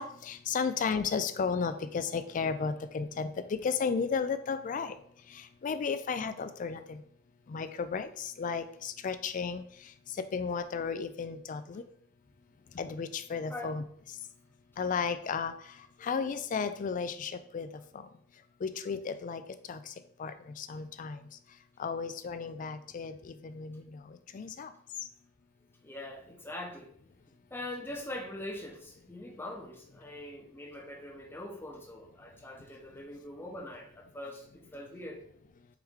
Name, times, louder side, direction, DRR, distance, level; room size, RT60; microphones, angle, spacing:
voice 1, 0.0-4.9 5.6-7.0 7.5-9.6 10.2-11.8 12.8-13.8 14.8-15.5 16.0-17.7 18.6-19.4 19.7-19.8 20.2-21.2 21.8-24.0 24.3-24.7, left 5 dB, 40° left, 11 dB, 0.3 m, -33 dB
voice 2, 25.8-26.9 27.5-35.2, left 1 dB, 10° left, 0 dB, 0.7 m, -42 dB
4.7 x 3.1 x 3.6 m, 0.63 s
head